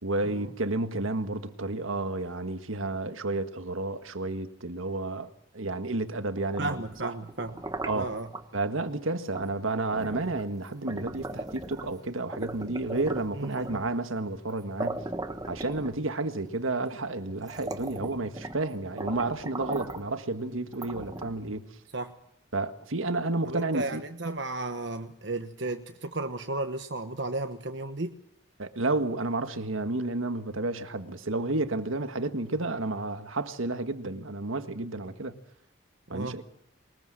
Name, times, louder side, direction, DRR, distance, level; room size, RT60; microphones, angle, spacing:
voice 1, 0.0-5.3 5.5-7.1 7.8-8.1 8.5-15.0 15.5-21.7 22.5-24.0 28.6-35.3 36.1-36.4, right 2 dB, 85° right, 1.7 m, -31 dB
sound 1, 6.4-8.5 9.3-9.5 9.9-12.0 12.3-14.0 14.5-14.6 14.8-16.3 17.0-17.1 17.4-18.7 19.0-20.1 20.7-21.5, right 2 dB, 20° right, 1.3 m, -38 dB
voice 2, 6.6-7.6 7.9-8.3 13.3-13.8 21.9-22.1 23.5-28.2 36.1-36.4, right 2 dB, 65° right, 1.2 m, -34 dB
22.0 x 21.0 x 7.7 m
head